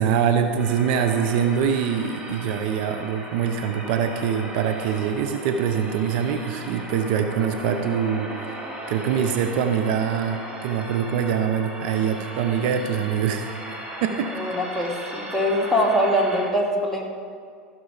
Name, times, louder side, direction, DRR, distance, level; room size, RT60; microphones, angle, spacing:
voice 1, 0.0-8.4 8.9-13.5 14.0-14.3, right 7 dB, 60° right, 6 dB, 0.8 m, -24 dB
sound 1, 0.6-16.4, right 1 dB, 20° right, 2.4 m, -37 dB
voice 2, 14.4-17.0, equal, ahead, -3 dB, 2.5 m, -23 dB
15.5 x 6.3 x 5.0 m, 2.1 s
hypercardioid pair, 90°, 5 cm